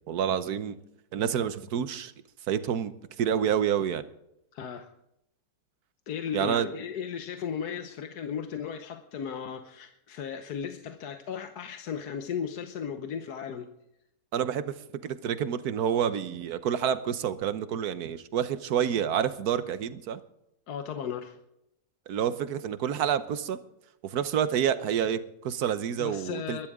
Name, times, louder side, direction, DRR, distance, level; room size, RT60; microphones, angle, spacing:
voice 1, 0.1-0.8 1.1-2.1 2.5-2.9 3.2-4.0 6.3-6.7 14.3-14.7 15.0-20.2 22.1-23.6 24.0-26.7, right 9 dB, 65° right, 13 dB, 1.3 m, -28 dB
voice 2, 4.5-4.9 6.1-13.7 20.7-21.4 26.0-26.7, left 7 dB, 65° left, 7 dB, 1.4 m, -36 dB
22.0 x 12.0 x 3.6 m, 0.83 s
omnidirectional pair, 1.9 m